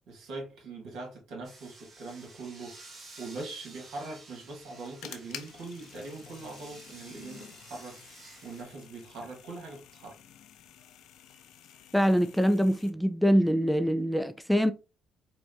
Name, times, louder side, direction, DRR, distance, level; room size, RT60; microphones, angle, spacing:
voice 1, 0.1-10.1, right 3 dB, 70° right, 1.4 m, -42 dB
sound 1, 1.4-8.6, right 3 dB, 50° right, 1.6 m, -52 dB
sound 2, 4.5-12.9, left 10 dB, 75° left, 0.4 m, -50 dB
voice 2, 11.9-14.7, equal, ahead, 0.3 m, -24 dB
4.2 x 2.2 x 2.6 m
hypercardioid pair, 55°, 0 cm